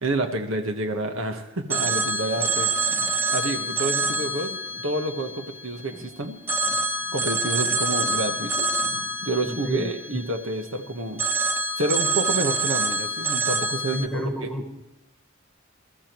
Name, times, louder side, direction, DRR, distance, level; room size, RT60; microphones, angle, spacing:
voice 1, 0.0-2.7 3.3-4.6 4.8-6.4 7.1-8.7 9.2-11.2 11.8-14.3, right 2 dB, 75° right, 5 dB, 1.3 m, -28 dB
sound 1, 1.6-5.5 5.8-9.8, equal, 35° right, 1.0 m, -47 dB
Telephone, 1.7-6.0 6.5-10.7 11.2-14.1, right 2 dB, 10° right, 0.8 m, -26 dB
voice 2, 9.4-10.2 13.9-14.7, equal, 5° left, 2 dB, 1.5 m, -30 dB
21.5 x 13.5 x 3.1 m, 0.97 s
head